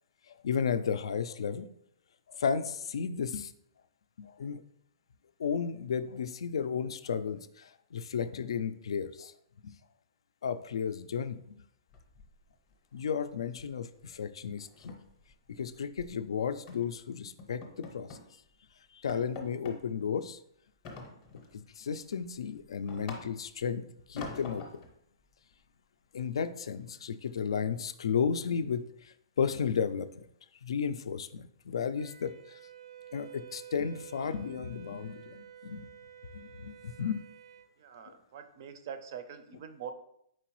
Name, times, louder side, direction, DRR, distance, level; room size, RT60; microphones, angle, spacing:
voice 1, 0.4-1.7 2.3-3.5 4.2-4.6 5.4-9.3 9.6-9.7 10.4-11.6 12.9-14.9 15.6-18.2 18.9-20.4 21.5-24.7 26.1-30.2 30.6-32.6 33.1-35.9 36.3-37.2 38.1-38.2, left 6 dB, 85° left, 12 dB, 0.3 m, -33 dB
sound 1, 11.9-12.7 13.0-13.3 13.6-13.8 14.1-14.2 14.6-16.1 16.7-16.9 17.4-18.3 18.7-18.8 19.1-19.8 20.8-21.6 22.0-23.6 24.2-24.9, left 3 dB, 20° left, 0.6 m, -45 dB
Wind instrument woodwind instrument, 32.0-37.7, right 10 dB, 90° right, 0.6 m, -50 dB
voice 2, 37.8-39.9, right 7 dB, 40° right, 9 dB, 0.4 m, -44 dB
4.5 x 3.9 x 3.0 m, 0.71 s
hypercardioid pair, 175°, 3 cm